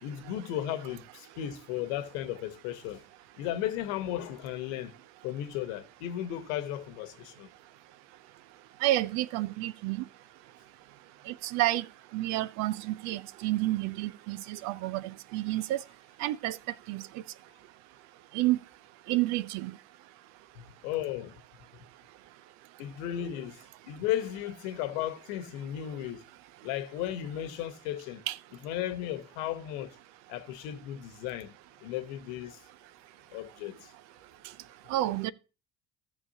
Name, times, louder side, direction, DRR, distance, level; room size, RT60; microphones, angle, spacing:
voice 1, 0.0-3.0 3.4-4.9 5.2-7.5 20.6-21.3 22.8-23.6 23.9-26.2 26.6-28.2 28.6-29.9 30.3-31.5 31.8-32.6 33.3-33.9, left 12 dB, 65° left, 1.2 m, -35 dB
voice 2, 8.8-10.0 11.3-11.9 12.1-15.8 16.2-16.6 16.9-17.0 18.3-18.6 19.1-19.7 28.3-28.4 34.9-35.3, right 16 dB, 55° right, 0.5 m, -29 dB
16.5 x 6.6 x 2.8 m
hypercardioid pair, 65°, 34 cm